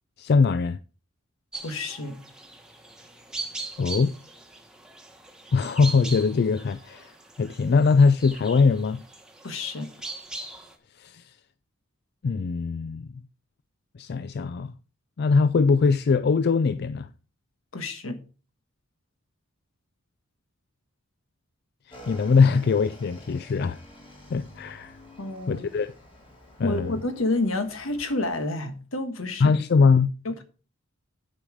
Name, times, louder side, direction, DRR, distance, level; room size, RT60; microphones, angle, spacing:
voice 1, 0.2-0.8 3.8-4.1 5.5-7.1 7.4-9.0 11.0-11.3 12.2-13.1 14.0-14.7 15.2-17.1 21.9-23.8 24.3-25.0 25.5-25.9 26.6-27.0 29.4-30.1, left 4 dB, 50° left, 0.4 m, -21 dB
sound 1, 1.5-10.8, right 3 dB, 5° right, 1.2 m, -40 dB
voice 2, 1.6-2.2 9.4-9.9 17.7-18.2 25.2-25.7 26.6-29.6 30.2-30.4, left 2 dB, 75° left, 1.4 m, -29 dB
Motorcycle / Engine, 21.9-28.5, left 1 dB, 25° left, 2.4 m, -49 dB
10.0 x 5.5 x 4.9 m
head